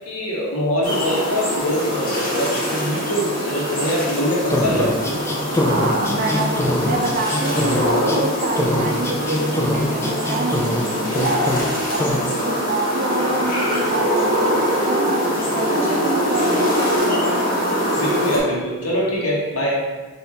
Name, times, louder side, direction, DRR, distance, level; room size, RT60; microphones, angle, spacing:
voice 1, 0.0-4.9 17.9-19.8, equal, 85° left, -4 dB, 1.1 m, -23 dB
sound 1, 0.8-18.4, equal, 40° left, 1.4 m, -23 dB
sound 2, 4.5-8.2 8.5-10.9 11.1-11.7 12.0-12.2, left 1 dB, 15° left, 0.3 m, -23 dB
voice 2, 5.6-6.5 6.8-11.4 11.9-16.9, right 2 dB, 40° right, 1 dB, 0.5 m, -26 dB
4.2 x 2.7 x 3.4 m, 1.3 s
head